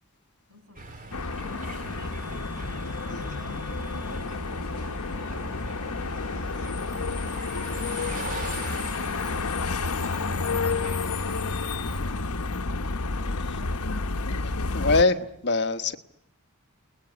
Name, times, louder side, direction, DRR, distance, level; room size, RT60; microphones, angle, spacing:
voice 1, 0.5-1.2 3.0-5.8, left 2 dB, 75° right, 7.3 m, -53 dB
sound 1, 0.7-12.1, right 2 dB, 35° right, 2.7 m, -41 dB
sound 2, 1.1-15.0, left 3 dB, 75° left, 1.0 m, -30 dB
voice 2, 14.7-16.0, left 3 dB, 50° left, 1.3 m, -23 dB
29.5 x 20.5 x 9.5 m
head